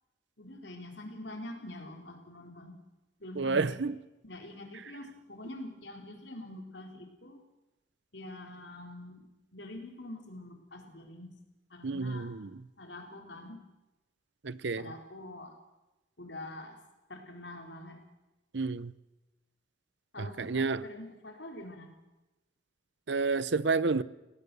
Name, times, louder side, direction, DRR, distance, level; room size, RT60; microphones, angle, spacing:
voice 1, 0.4-2.8 3.2-3.8 4.2-7.4 8.1-11.4 11.7-12.3 12.8-13.6 14.8-15.6 16.2-16.8 17.1-18.0 20.1-21.9, left 1 dB, 65° left, 3.9 m, -45 dB
voice 2, 3.4-3.9 11.8-12.5 14.4-14.9 18.5-18.9 20.2-20.8 23.1-24.0, right 4 dB, 70° right, 0.7 m, -30 dB
29.0 x 17.5 x 6.9 m
head